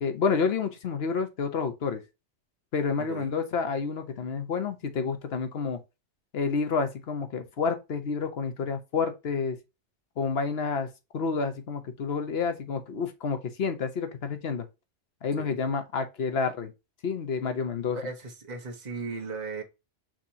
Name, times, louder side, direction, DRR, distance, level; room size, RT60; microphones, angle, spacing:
voice 1, 0.0-2.0 2.7-5.8 6.3-9.6 10.2-14.7 15.2-16.7 17.0-18.0, left 5 dB, 60° left, 1.1 m, -29 dB
voice 2, 3.0-3.4 15.4-15.7 17.9-19.6, right 4 dB, 40° right, 1.1 m, -37 dB
6.0 x 2.9 x 2.8 m
omnidirectional pair, 1.2 m